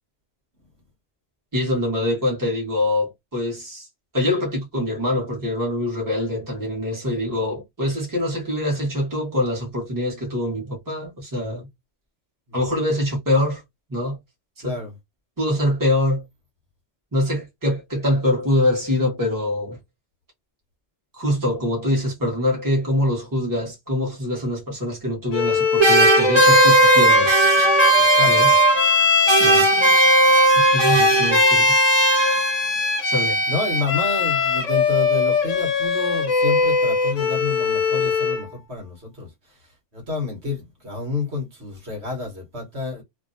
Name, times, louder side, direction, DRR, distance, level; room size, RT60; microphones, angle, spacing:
voice 1, 1.5-3.9 4.1-11.7 12.5-13.6 13.9-14.2 14.6-14.8 15.4-16.2 17.1-19.8 21.2-27.3 28.3-28.5 29.4-29.7 30.7-31.6 33.0-33.4, left 1 dB, 15° right, 1.3 m, -24 dB
voice 2, 12.5-12.8 14.6-14.9 28.0-28.5 30.9-31.5 33.5-39.6 39.9-43.0, left 3 dB, 60° right, 1.6 m, -30 dB
Bowed string instrument, 25.3-38.5, left 4 dB, 85° left, 1.2 m, -21 dB
sound 1, 25.8-29.0 29.3-32.7, right 2 dB, 35° right, 0.5 m, -16 dB
2.9 x 2.8 x 2.6 m
omnidirectional pair, 1.3 m